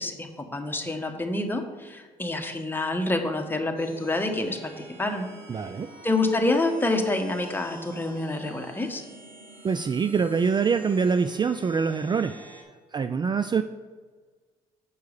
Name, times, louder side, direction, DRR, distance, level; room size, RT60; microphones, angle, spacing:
voice 1, 0.0-5.3 6.0-9.0, left 2 dB, 15° left, 3 dB, 1.3 m, -27 dB
sound 1, 3.8-12.6, right 1 dB, 70° right, 2.3 m, -47 dB
voice 2, 5.5-5.9 9.6-12.3 12.9-13.6, right 5 dB, 30° right, 11 dB, 0.4 m, -24 dB
7.3 x 4.6 x 6.6 m, 1.4 s
supercardioid pair, 65°, 15 cm